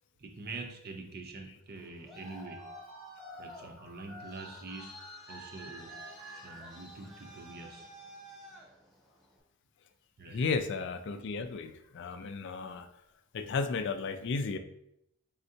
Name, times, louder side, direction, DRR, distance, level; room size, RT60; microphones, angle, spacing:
voice 1, 0.2-2.7 3.4-5.0 5.3-6.1 6.3-7.9 10.2-10.5, right 3 dB, 45° right, 4 dB, 0.6 m, -45 dB
Traffic noise roadway noise, 1.7-9.4, equal, ahead, 0.8 m, -51 dB
sound 1, 2.3-7.4, right 1 dB, 90° right, 1.4 m, -50 dB
voice 2, 10.3-12.9 13.3-14.6, left 4 dB, 55° left, 8 dB, 0.4 m, -34 dB
4.3 x 3.7 x 2.8 m, 0.78 s
head